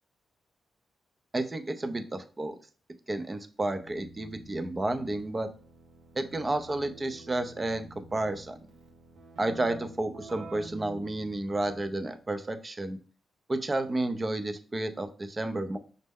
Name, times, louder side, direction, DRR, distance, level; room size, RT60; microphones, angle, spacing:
voice 1, 1.3-2.6 3.1-5.5 6.2-8.6 9.4-13.0 13.5-15.8, right 2 dB, 30° right, 7 dB, 0.5 m, -31 dB
Keyboard (musical), 3.8-12.2, right 2 dB, 90° right, 0.8 m, -49 dB
5.2 x 2.1 x 3.5 m, 0.40 s
cardioid pair, 75°, 0 cm